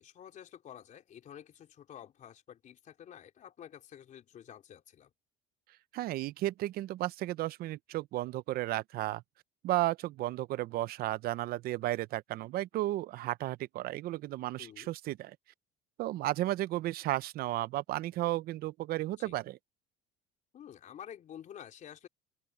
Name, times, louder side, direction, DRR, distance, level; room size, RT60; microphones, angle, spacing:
voice 1, 0.0-5.1 14.6-14.9 19.2-19.4 20.5-22.1, left 9 dB, 45° left, 3.9 m, -50 dB
voice 2, 5.9-9.2 9.6-15.4 16.0-19.6, right 16 dB, 55° right, 0.7 m, -33 dB
open air
cardioid pair, 115°, 18 cm